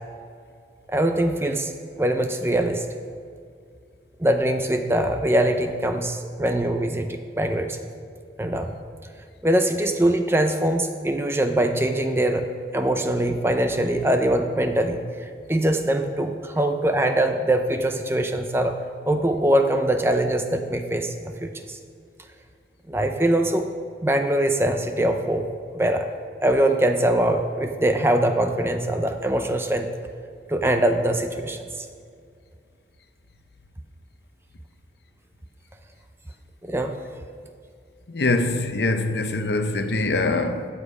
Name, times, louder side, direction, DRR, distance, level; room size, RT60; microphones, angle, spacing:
voice 1, 0.9-1.7 2.0-3.0 4.2-7.8 8.4-8.8 9.4-12.5 12.7-15.0 15.5-18.7 19.1-21.8 22.9-23.7 24.0-25.5 25.7-26.1 26.4-29.9 30.5-31.6 36.6-37.0, right 1 dB, 15° right, 0.5 m, -22 dB
voice 2, 38.1-40.7, left 2 dB, 70° left, 0.8 m, -23 dB
13.5 x 7.3 x 4.9 m
head